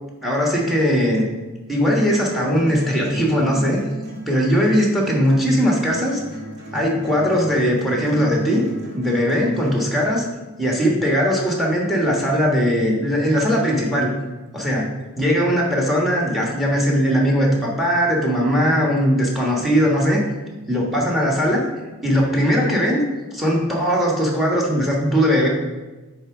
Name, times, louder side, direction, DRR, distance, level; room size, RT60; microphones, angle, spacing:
voice 1, 0.2-1.3 1.7-3.8 4.3-6.2 6.7-8.6 8.9-10.2 10.6-14.1 14.5-14.9 15.2-20.2 20.7-21.6 22.0-23.0 23.3-25.5, equal, ahead, -1 dB, 1.4 m, -19 dB
sound 1, 1.8-9.8, right 1 dB, 50° right, 2.0 m, -36 dB
8.6 x 3.4 x 4.9 m, 1.2 s
head